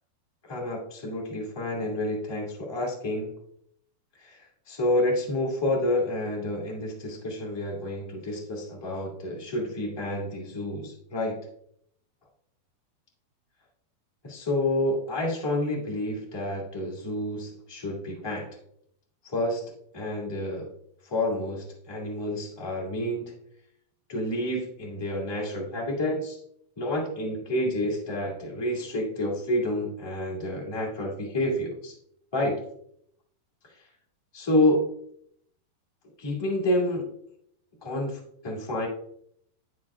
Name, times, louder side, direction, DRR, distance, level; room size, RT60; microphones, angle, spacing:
voice 1, 0.5-3.3 4.2-4.4 4.7-11.4 14.2-18.6 19.2-19.6 19.9-20.7 21.0-23.3 24.1-26.4 26.8-31.9 32.3-32.6 34.3-34.9 36.2-37.1 37.8-38.9, left 1 dB, 15° left, -3 dB, 0.9 m, -29 dB
11.0 x 6.2 x 2.4 m, 0.69 s
omnidirectional pair, 4.3 m